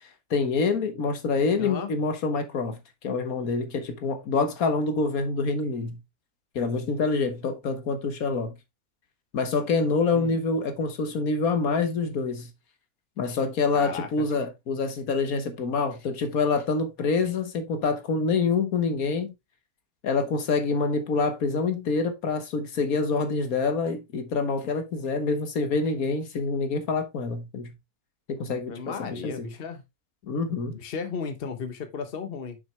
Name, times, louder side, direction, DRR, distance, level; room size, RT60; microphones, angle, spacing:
voice 1, 0.3-2.8 3.0-6.0 6.6-8.5 9.3-12.5 13.2-19.3 20.0-27.7 28.3-29.5 30.2-30.8, left 4 dB, 75° left, 1.6 m, -26 dB
voice 2, 1.6-1.9 10.1-10.4 13.7-14.3 28.7-29.8 30.7-32.6, left 5 dB, 45° left, 1.2 m, -35 dB
6.6 x 6.1 x 3.3 m
omnidirectional pair, 1.5 m